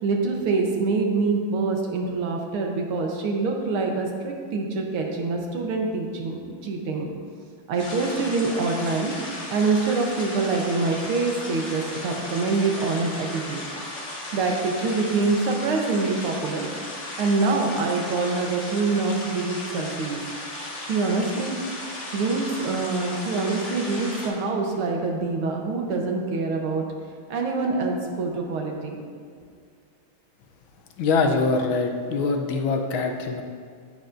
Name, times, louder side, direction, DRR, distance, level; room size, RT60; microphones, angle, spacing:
voice 1, 0.0-7.1 7.7-9.1 9.5-13.6 14.3-16.7 17.2-20.2 20.8-21.5 22.1-26.8 27.3-29.1, right 3 dB, 80° right, 1 dB, 1.9 m, -25 dB
sound 1, 7.8-24.3, left 1 dB, 35° left, 1.6 m, -36 dB
voice 2, 31.0-33.4, left 4 dB, 75° left, 3 dB, 1.5 m, -23 dB
10.0 x 8.9 x 2.6 m, 2.3 s
omnidirectional pair, 2.3 m